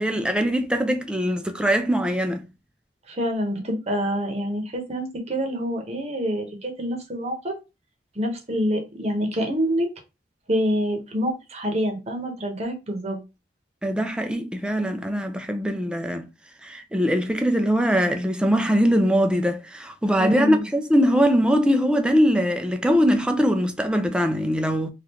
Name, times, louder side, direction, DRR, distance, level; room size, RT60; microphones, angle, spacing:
voice 1, 0.0-2.4 13.8-16.3 16.6-24.9, equal, 5° right, 0.4 m, -22 dB
voice 2, 3.1-7.5 8.1-9.9 10.5-13.2 20.2-20.7, equal, 35° right, 0.9 m, -26 dB
3.4 x 2.4 x 2.9 m
head